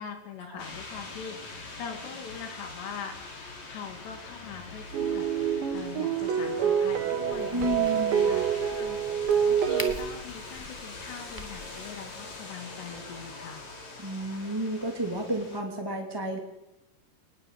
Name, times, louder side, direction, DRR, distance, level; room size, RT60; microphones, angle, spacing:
voice 1, 0.0-13.7, left 7 dB, 75° left, 5 dB, 4.7 m, -42 dB
sound 1, 0.6-15.6, left 3 dB, 40° left, 5.2 m, -43 dB
sound 2, 4.9-9.9, right 8 dB, 85° right, 4.0 m, -26 dB
Crack, 7.3-12.4, left 1 dB, 10° left, 0.9 m, -45 dB
voice 2, 7.5-8.3 14.0-16.4, right 1 dB, 10° right, 2 dB, 1.8 m, -31 dB
23.5 x 20.5 x 8.6 m, 0.93 s
omnidirectional pair, 5.0 m